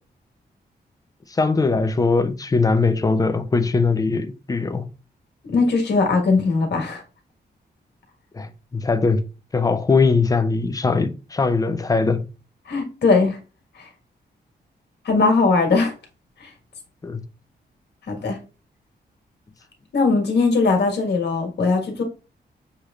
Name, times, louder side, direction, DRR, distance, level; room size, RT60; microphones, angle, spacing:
voice 1, 1.3-4.9 8.3-9.2 9.5-12.3 17.0-17.2, left 4 dB, 20° left, 0.4 m, -21 dB
voice 2, 5.5-7.0 12.7-13.4 15.0-15.9 16.4-16.5 18.1-18.4 19.9-22.0, left 3 dB, 75° left, 1.6 m, -19 dB
6.5 x 3.1 x 2.4 m
wide cardioid pair, 170°, 18 cm